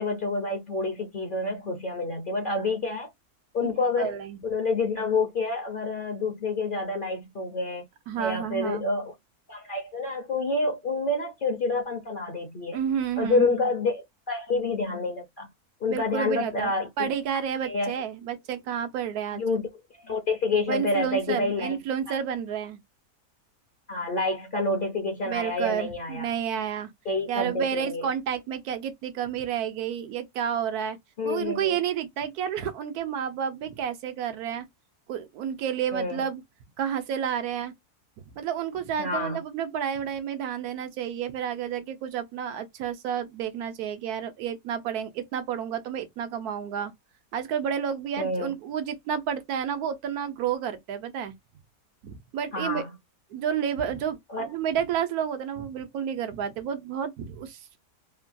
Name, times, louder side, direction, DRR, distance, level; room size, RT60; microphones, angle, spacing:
voice 1, 0.0-3.1 3.5-7.9 8.2-9.1 9.5-12.8 13.2-15.5 15.8-17.1 17.6-17.9 19.3-19.7 20.0-21.8 23.9-26.3 27.1-28.1 31.2-31.8 35.9-36.3 39.0-39.4 48.2-48.5 52.5-52.9 54.3-54.5, left 3 dB, 50° left, 0.6 m, -28 dB
voice 2, 4.0-4.4 8.1-8.8 12.7-13.5 15.9-16.7 17.0-19.4 20.7-22.8 25.2-26.9 27.3-31.0 31.2-34.7 35.1-36.4 36.8-37.7 38.3-46.9 47.3-51.3 52.0-52.8 53.3-57.8, right 8 dB, 80° right, 1.1 m, -30 dB
3.1 x 2.2 x 2.5 m
omnidirectional pair, 1.6 m